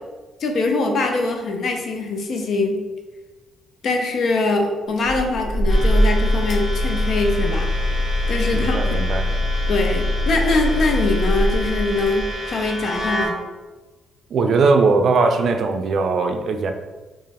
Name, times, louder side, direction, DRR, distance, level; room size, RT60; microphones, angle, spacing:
voice 1, 0.4-2.8 3.8-7.7 8.3-8.8 9.7-13.4, left 3 dB, 60° left, 3 dB, 0.6 m, -22 dB
sound 1, 5.0-12.3, left 1 dB, 80° left, 0.9 m, -22 dB
sound 2, 5.7-13.3, equal, 15° left, 1.1 m, -31 dB
voice 2, 8.5-9.3 14.3-16.7, right 4 dB, 60° right, 6 dB, 0.4 m, -19 dB
3.0 x 2.4 x 4.0 m, 1.2 s
cardioid pair, 90°, 0 cm